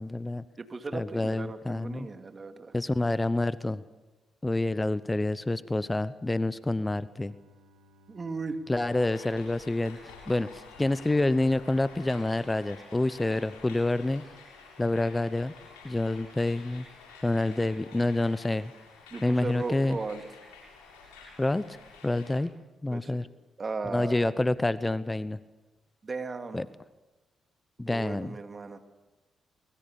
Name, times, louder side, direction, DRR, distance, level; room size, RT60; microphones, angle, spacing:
voice 1, 0.0-0.4 0.9-2.1 2.7-3.8 4.4-7.3 8.7-14.2 14.8-15.5 15.8-16.8 17.2-18.7 19.2-20.0 21.4-21.8 22.0-22.5 22.8-23.3 23.9-25.4 26.5-26.7 27.8-28.4, left 2 dB, 20° left, 16 dB, 0.8 m, -28 dB
voice 2, 0.6-2.7 8.1-8.6 19.1-20.2 22.9-23.2 23.6-24.3 26.0-26.6 27.8-28.8, right 4 dB, 40° right, 7 dB, 2.4 m, -36 dB
Bowed string instrument, 6.4-11.2, left 1 dB, 85° right, 2.9 m, -62 dB
sound 1, 8.8-22.4, left 4 dB, 85° left, 7.7 m, -50 dB
24.0 x 21.5 x 7.1 m, 1.1 s
hypercardioid pair, 45°, 0 cm